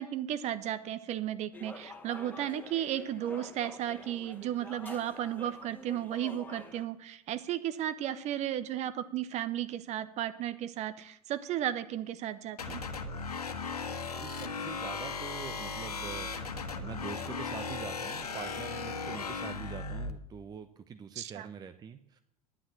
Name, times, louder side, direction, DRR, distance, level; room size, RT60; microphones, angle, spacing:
voice 1, 0.0-12.8 21.2-21.5, right 11 dB, 35° right, 14 dB, 1.0 m, -34 dB
sound 1, 1.5-6.8, left 3 dB, 10° left, 2.1 m, -48 dB
sound 2, 12.6-20.1, left 4 dB, 75° left, 1.4 m, -37 dB
voice 2, 14.2-22.2, right 6 dB, 20° right, 10 dB, 0.7 m, -44 dB
11.0 x 10.0 x 7.3 m, 0.74 s
figure-of-eight pair, 80°, 20 cm